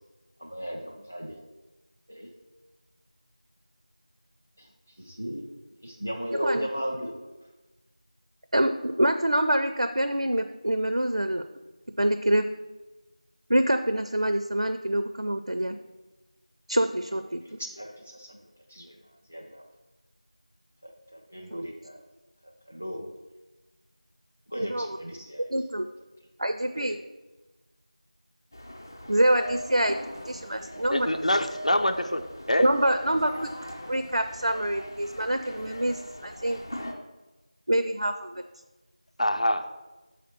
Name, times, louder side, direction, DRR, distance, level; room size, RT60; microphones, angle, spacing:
voice 1, 0.4-1.4 2.1-2.3 4.6-4.7 5.0-5.4 5.8-7.1 17.4-19.0 19.3-19.6 20.8-22.0 22.4-23.1 24.5-25.5 26.7-26.9, equal, 15° left, 1 dB, 0.4 m, -36 dB
voice 2, 8.5-11.4 12.0-12.5 13.5-15.8 16.7-17.6 21.5-21.7 24.6-24.9 25.5-25.9 26.4-27.0 29.1-30.0 30.3-31.1 32.6-33.5 33.8-36.6 37.7-38.4, right 1 dB, 70° right, 8 dB, 0.5 m, -26 dB
sound 1, 28.5-36.9, equal, 30° left, 0.8 m, -41 dB
voice 3, 30.9-32.7 39.2-39.7, left 1 dB, 65° left, 8 dB, 0.8 m, -25 dB
6.7 x 5.0 x 6.4 m, 1.1 s
figure-of-eight pair, 175°, 4 cm